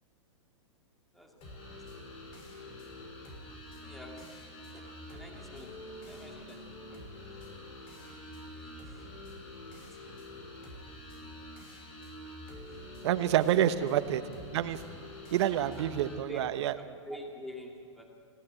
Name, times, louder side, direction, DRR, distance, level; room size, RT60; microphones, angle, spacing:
sound 1, 1.4-16.2, left 1 dB, 35° left, 6.1 m, -46 dB
voice 1, 3.8-6.6 6.9-7.2 8.5-9.3 15.8-16.0 16.3-16.5 16.8-18.2, equal, ahead, 0 dB, 2.5 m, -48 dB
voice 2, 13.0-14.2 14.5-14.8 15.3-16.8, right 11 dB, 60° right, 12 dB, 1.2 m, -28 dB
21.5 x 17.0 x 8.3 m, 2.3 s
hypercardioid pair, 125°, 16 cm